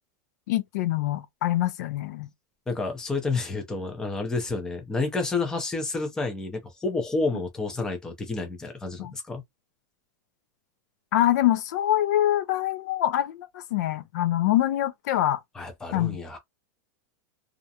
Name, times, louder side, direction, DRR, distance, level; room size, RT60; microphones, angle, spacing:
voice 1, 0.5-2.3 9.0-9.1 11.1-15.4 15.9-16.2, left 13 dB, 60° left, 0.4 m, -25 dB
voice 2, 2.7-9.4 15.5-16.4, left 3 dB, 5° left, 0.5 m, -30 dB
2.4 x 2.1 x 2.7 m
supercardioid pair, 170°, 10 cm